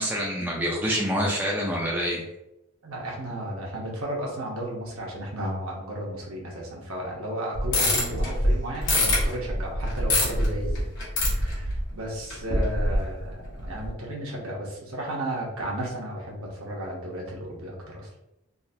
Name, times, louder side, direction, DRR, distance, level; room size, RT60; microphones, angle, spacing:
voice 1, 0.0-2.2, equal, 10° right, -4 dB, 0.5 m, -26 dB
voice 2, 2.8-10.9 11.1-18.1, right 1 dB, 75° right, -3 dB, 1.0 m, -34 dB
sound 1, 7.5-12.0 12.3-13.3 13.6-13.9, left 1 dB, 55° left, 1.3 m, -24 dB
3.7 x 2.5 x 2.7 m, 0.88 s
head